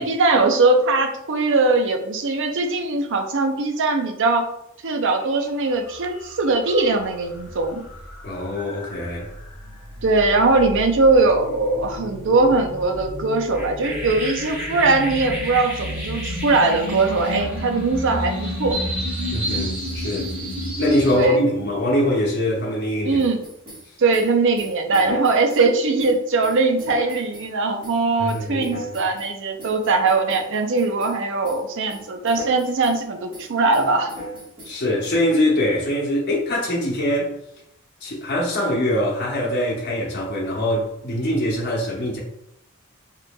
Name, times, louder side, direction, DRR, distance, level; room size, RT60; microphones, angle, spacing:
voice 1, 0.0-4.5 4.8-7.8 10.0-18.8 21.1-21.6 23.0-23.4 24.0-34.1, right 3 dB, 60° right, 0.6 m, -20 dB
sound 1, 5.2-5.4 5.8-21.3, equal, 10° right, 1.4 m, -31 dB
voice 2, 8.2-9.3 19.3-20.3 20.8-23.2 28.2-29.0 34.6-37.3 38.0-42.2, left 1 dB, 50° left, 0.9 m, -23 dB
sound 2, 23.2-25.7 26.0-27.5 27.8-28.0 28.3-29.3 29.6-31.2 31.4-31.6 31.9-33.0 33.3-35.1, equal, 25° right, 1.5 m, -36 dB
4.7 x 3.1 x 2.3 m
head